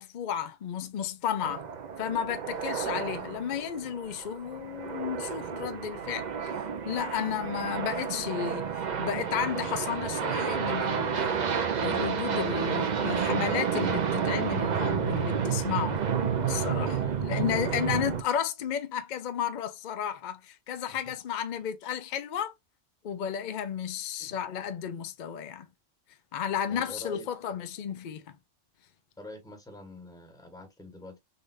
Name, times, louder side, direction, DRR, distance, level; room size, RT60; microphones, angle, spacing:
voice 1, 0.0-1.7 2.0-6.5 6.9-16.0 16.4-22.5 23.0-25.7 26.3-28.4, left 8 dB, 60° left, 0.5 m, -33 dB
sound 1, 1.4-18.2, right 7 dB, 50° right, 0.6 m, -30 dB
voice 2, 17.0-17.4 21.1-21.2 24.2-24.4 26.7-27.6 29.2-31.2, left 2 dB, 5° left, 1.0 m, -46 dB
4.0 x 3.3 x 2.4 m
omnidirectional pair, 1.3 m